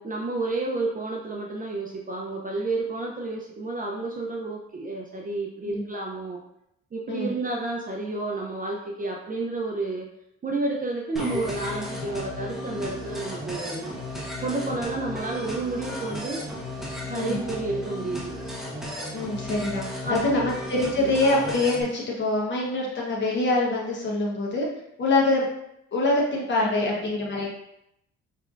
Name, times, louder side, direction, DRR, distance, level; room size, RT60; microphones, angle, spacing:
voice 1, 0.0-6.4 6.9-10.1 10.4-13.9 14.4-16.4 17.1-18.4 20.0-20.4 21.0-21.1 26.6-26.9, right 2 dB, 30° right, -1 dB, 0.6 m, -30 dB
sound 1, 11.2-21.8, left 1 dB, ahead, 1.1 m, -34 dB
voice 2, 19.1-24.7 25.0-25.5 25.9-27.5, left 2 dB, 40° left, -4 dB, 1.1 m, -25 dB
5.1 x 3.3 x 2.5 m, 0.79 s
cardioid pair, 90°, 30 cm